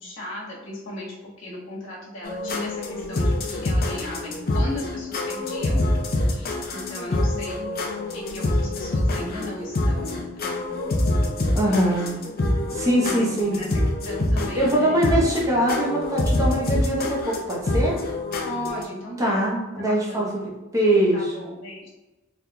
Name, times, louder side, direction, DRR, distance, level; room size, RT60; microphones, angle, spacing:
voice 1, 0.0-5.8 6.3-7.7 7.9-10.9 11.6-13.7 14.0-15.1 18.4-19.3 19.9-20.3 21.1-21.9, left 1 dB, 65° left, -5 dB, 1.4 m, -36 dB
sound 1, 2.2-18.8, left 1 dB, 45° left, 0.6 m, -25 dB
voice 2, 11.5-12.2 12.7-13.6 14.5-18.0 19.2-21.4, right 1 dB, 15° right, -4 dB, 0.9 m, -22 dB
4.1 x 3.4 x 2.3 m, 1.1 s
head